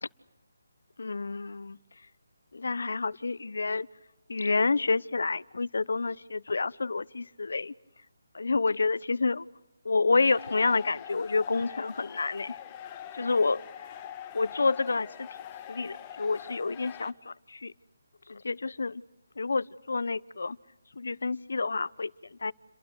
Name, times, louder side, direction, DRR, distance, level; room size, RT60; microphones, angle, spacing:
voice 1, 1.0-1.8 2.5-3.9 4.3-7.7 8.3-9.5 9.8-12.6 13.1-13.9 14.3-15.3 15.7-17.7 18.3-19.0 19.4-20.6 20.9-22.5, left 3 dB, 70° left, 0.9 m, -29 dB
sound 1, 10.3-17.1, left 10 dB, 20° left, 1.6 m, -44 dB
30.0 x 23.0 x 8.0 m
figure-of-eight pair, 160°, 0 cm